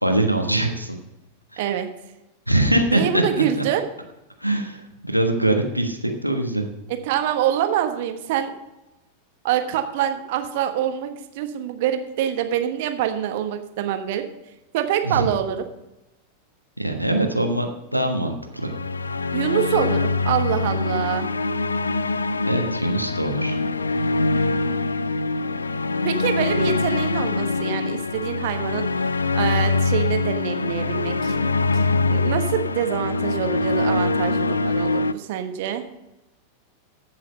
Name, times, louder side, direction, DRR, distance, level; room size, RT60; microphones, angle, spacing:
voice 1, 0.0-1.0 1.5-1.6 2.5-3.2 3.6-3.7 4.4-6.7 15.0-15.3 16.8-17.7 17.9-18.7 22.4-23.6, right 1 dB, 90° right, 3 dB, 1.3 m, -22 dB
voice 2, 1.6-1.9 2.8-3.8 6.9-8.6 9.4-14.2 14.7-15.6 19.3-21.3 26.0-31.4 31.7-35.8, right 10 dB, 50° right, 7 dB, 1.3 m, -25 dB
sound 1, 18.6-35.1, left 3 dB, 75° left, 0.4 m, -23 dB
14.5 x 6.4 x 5.3 m, 0.95 s
figure-of-eight pair, 90°, 0 cm